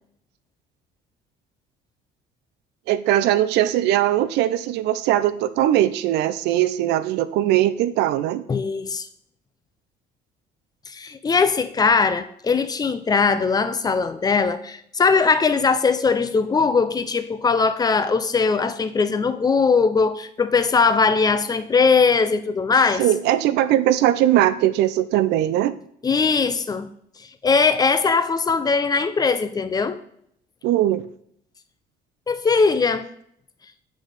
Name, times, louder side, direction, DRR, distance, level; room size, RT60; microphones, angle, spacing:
voice 1, 2.9-8.4 23.0-25.7 30.6-31.0, right 13 dB, 80° right, 15 dB, 0.4 m, -20 dB
voice 2, 8.5-9.1 10.9-23.0 26.0-26.9 27.4-30.0 32.3-33.1, left 5 dB, 25° left, 11 dB, 0.4 m, -20 dB
8.2 x 4.0 x 3.3 m, 0.68 s
cardioid pair, 110°, 17 cm